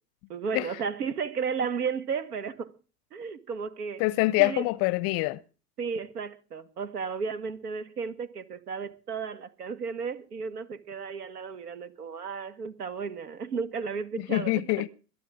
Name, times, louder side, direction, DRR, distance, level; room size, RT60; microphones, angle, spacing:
voice 1, 0.3-2.7 3.1-4.0 4.4-4.7 5.8-14.7, right 5 dB, 75° right, 2.1 m, -34 dB
voice 2, 4.0-5.4 14.3-14.9, left 20 dB, 30° left, 0.6 m, -25 dB
22.0 x 12.0 x 3.7 m
hypercardioid pair, 100°, 47 cm